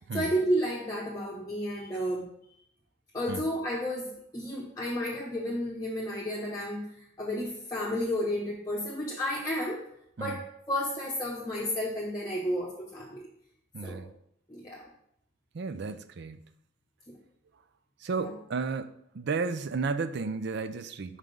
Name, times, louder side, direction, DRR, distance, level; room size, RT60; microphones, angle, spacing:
voice 1, 0.1-2.2 3.1-9.8 10.2-13.3 13.8-14.0 14.5-14.8 18.2-18.3, equal, 15° left, 0.9 m, -32 dB
voice 2, 13.7-14.1 15.5-16.5 18.0-21.2, right 4 dB, 55° right, 0.5 m, -33 dB
5.7 x 4.8 x 5.2 m
head